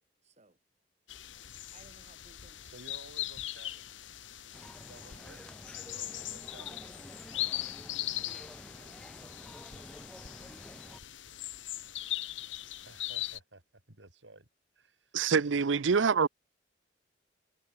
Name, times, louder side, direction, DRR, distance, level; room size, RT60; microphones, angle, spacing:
voice 1, 0.2-0.6 1.7-2.6 6.4-7.7 8.1-11.1, right 2 dB, 40° right, 7.3 m, -63 dB
sound 1, 1.1-13.4, left 15 dB, 80° left, 1.2 m, -40 dB
voice 2, 2.6-4.1 4.8-5.5 5.8-6.8 12.9-14.5 14.7-15.2, right 2 dB, 75° right, 5.3 m, -55 dB
sound 2, 4.5-11.0, equal, 5° left, 2.4 m, -50 dB
voice 3, 15.1-16.3, right 5 dB, 90° right, 0.6 m, -25 dB
head